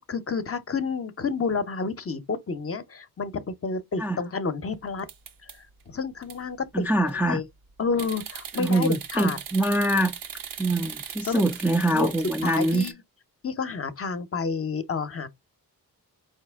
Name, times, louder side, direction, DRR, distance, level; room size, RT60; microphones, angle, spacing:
voice 1, 0.0-5.1 5.9-7.4 7.8-9.4 11.3-11.4 11.9-12.1 12.4-13.0 13.4-15.3, left 5 dB, 40° left, 0.7 m, -30 dB
sound 1, 5.0-5.8 6.2-6.4 6.8-7.2 8.0-12.9, right 7 dB, 65° right, 0.7 m, -39 dB
voice 2, 6.7-7.4 8.5-10.1 10.6-12.8, right 1 dB, 5° right, 0.4 m, -24 dB
4.2 x 2.8 x 3.4 m
cardioid pair, 65°, 37 cm